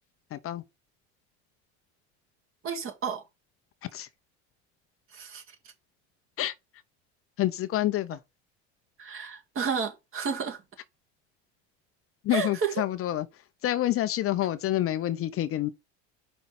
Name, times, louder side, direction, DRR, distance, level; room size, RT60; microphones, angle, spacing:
voice 1, 0.3-0.6 3.9-4.1 6.4-6.5 7.4-8.2 12.2-13.2 13.6-15.7, left 13 dB, 45° left, 0.7 m, -27 dB
voice 2, 2.6-3.2 5.1-5.4 9.0-10.6 12.3-12.8, right 6 dB, 40° right, 2.0 m, -31 dB
5.4 x 3.9 x 5.8 m
supercardioid pair, 100°, 32 cm